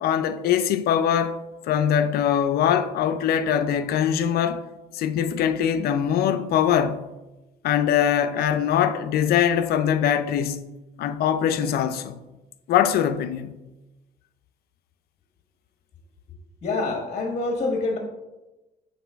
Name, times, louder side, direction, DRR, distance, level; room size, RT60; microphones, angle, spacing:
voice 1, 0.0-4.6 4.9-7.0 7.6-10.6 11.0-12.2 12.7-13.5, left 9 dB, 65° left, 0.5 m, -22 dB
voice 2, 16.6-18.0, left 3 dB, 40° left, 1.1 m, -26 dB
8.1 x 4.0 x 3.5 m
cardioid pair, 110°, 17 cm